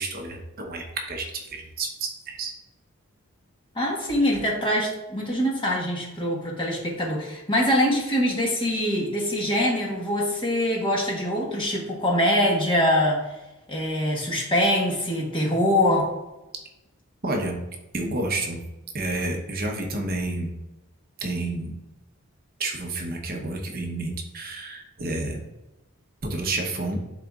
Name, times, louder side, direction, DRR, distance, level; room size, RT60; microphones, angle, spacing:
voice 1, 0.0-2.5 17.2-17.6 17.9-18.6 18.9-20.6 21.2-21.7 22.6-25.4 26.2-27.0, right 2 dB, 40° right, 2 dB, 0.8 m, -30 dB
voice 2, 3.7-13.2 13.7-16.1, left 1 dB, 20° left, -2 dB, 1.2 m, -24 dB
11.0 x 3.9 x 2.4 m, 0.99 s
head